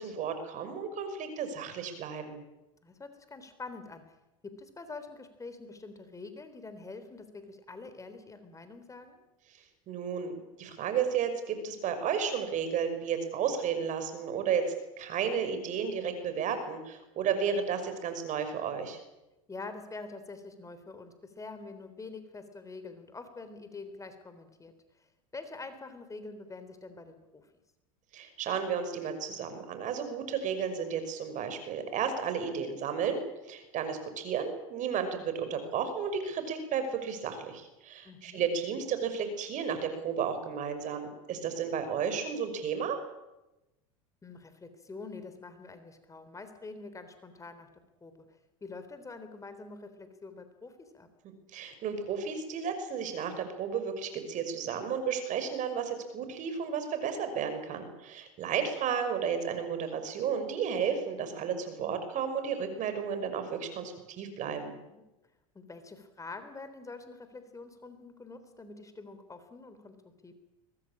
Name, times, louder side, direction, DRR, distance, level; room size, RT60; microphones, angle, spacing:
voice 1, 0.0-2.4 9.9-19.0 28.1-33.2 33.5-43.0 51.5-64.8, right 7 dB, 45° right, 9 dB, 5.9 m, -33 dB
voice 2, 2.8-4.1 4.4-9.2 19.5-25.1 25.3-27.5 38.0-38.4 44.2-47.7 48.0-48.1 48.6-51.1 64.4-64.6 64.9-65.0 65.6-70.0 70.2-70.3, left 3 dB, 20° left, 10 dB, 3.6 m, -46 dB
23.5 x 20.5 x 8.8 m, 0.96 s
hypercardioid pair, 95°, 17 cm